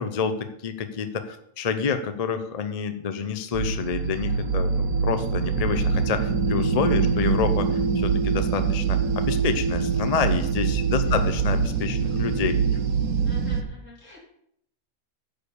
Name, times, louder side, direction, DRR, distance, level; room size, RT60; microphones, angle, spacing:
voice 1, 0.0-7.7 8.0-12.6, left 6 dB, 45° left, 9 dB, 0.5 m, -28 dB
sound 1, 3.5-13.6, right 5 dB, 80° right, 1.2 m, -24 dB
voice 2, 13.2-14.2, left 2 dB, 60° left, -4 dB, 3.5 m, -45 dB
9.6 x 4.7 x 6.8 m, 0.72 s
omnidirectional pair, 1.5 m